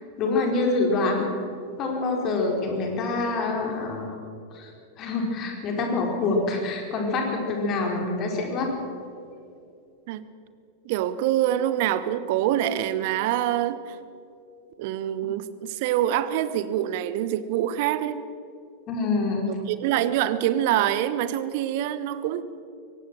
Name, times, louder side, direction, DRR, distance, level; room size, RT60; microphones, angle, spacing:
voice 1, 0.2-1.2 1.8-4.2 4.5-4.7 5.0-8.7 18.9-19.5, left 3 dB, 35° left, 1 dB, 4.5 m, -26 dB
voice 2, 10.8-14.0 14.8-18.2 19.5-22.4, right 12 dB, 50° right, 14 dB, 1.0 m, -25 dB
23.0 x 18.0 x 6.3 m, 2.5 s
figure-of-eight pair, 90°, 0 cm